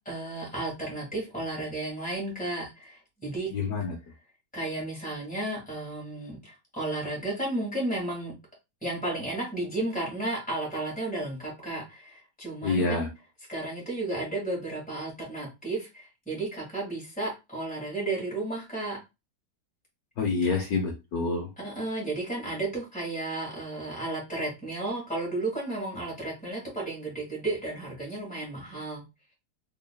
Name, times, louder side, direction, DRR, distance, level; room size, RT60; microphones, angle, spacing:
voice 1, 0.1-3.5 4.5-8.3 8.8-13.1 13.5-19.0 20.4-20.5 21.6-29.0, right 2 dB, 5° left, -3 dB, 2.0 m, -33 dB
voice 2, 3.5-4.0 12.6-13.1 20.2-21.5, left 4 dB, 65° left, 1 dB, 1.2 m, -27 dB
4.0 x 3.5 x 2.3 m, 0.24 s
omnidirectional pair, 1.8 m